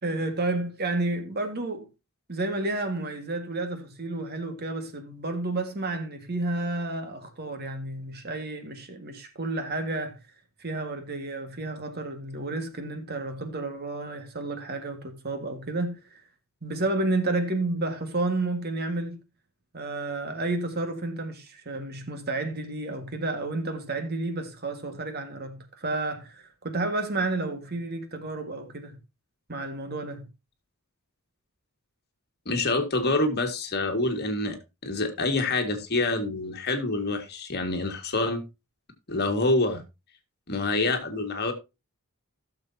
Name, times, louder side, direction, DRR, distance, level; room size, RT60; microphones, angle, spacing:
voice 1, 0.0-1.9 2.3-10.2 10.6-16.2 16.6-19.2 19.7-29.0 29.5-30.3, right 2 dB, 50° right, 1.7 m, -31 dB
voice 2, 32.5-34.6 34.8-38.4 39.1-39.8 40.5-41.5, left 2 dB, 50° left, 1.8 m, -26 dB
16.0 x 6.8 x 2.7 m
head